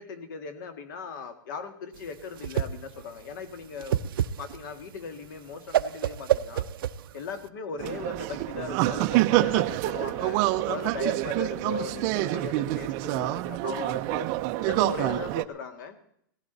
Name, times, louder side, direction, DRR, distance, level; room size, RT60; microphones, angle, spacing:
voice 1, 0.0-4.0 4.4-6.7 7.1-10.4 10.7-14.3 14.6-16.0, left 5 dB, 60° left, 9 dB, 2.0 m, -38 dB
Whoosh swoosh swish, 2.0-7.5, right 10 dB, 80° right, 0.7 m, -29 dB
sound 1, 7.8-15.4, right 17 dB, 35° right, 0.6 m, -27 dB
17.5 x 15.5 x 4.1 m, 0.69 s
supercardioid pair, 165°, 12 cm